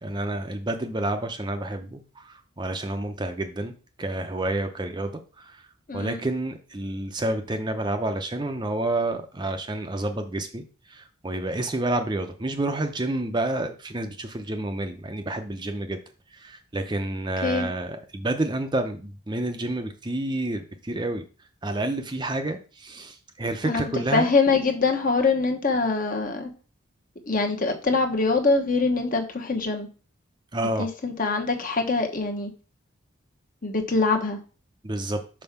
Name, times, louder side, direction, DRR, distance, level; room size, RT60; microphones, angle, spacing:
voice 1, 0.0-3.7 4.0-5.6 5.9-10.6 10.9-16.0 16.3-21.2 21.6-24.3 30.5-30.9 34.8-35.2, right 2 dB, 20° right, 6 dB, 0.6 m, -29 dB
voice 2, 5.9-6.2 17.4-17.7 23.6-26.5 27.3-29.9 30.8-32.5 33.6-34.4, left 3 dB, 40° left, 4 dB, 1.1 m, -24 dB
5.4 x 4.4 x 5.8 m, 0.36 s
head